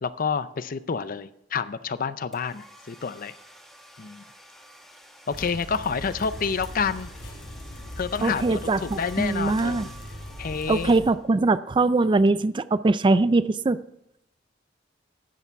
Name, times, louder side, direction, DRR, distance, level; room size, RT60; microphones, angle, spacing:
voice 1, 0.0-3.3 4.0-4.2 5.3-7.1 8.0-9.9 10.4-11.0, left 5 dB, 50° left, 14 dB, 0.5 m, -29 dB
sound 1, 2.3-11.5, right 1 dB, ahead, 1.7 m, -49 dB
sound 2, 5.3-11.1, left 1 dB, 75° left, 2.6 m, -40 dB
voice 2, 8.2-9.9 10.7-13.8, right 3 dB, 25° right, 15 dB, 0.4 m, -22 dB
12.5 x 8.3 x 4.6 m, 0.78 s
head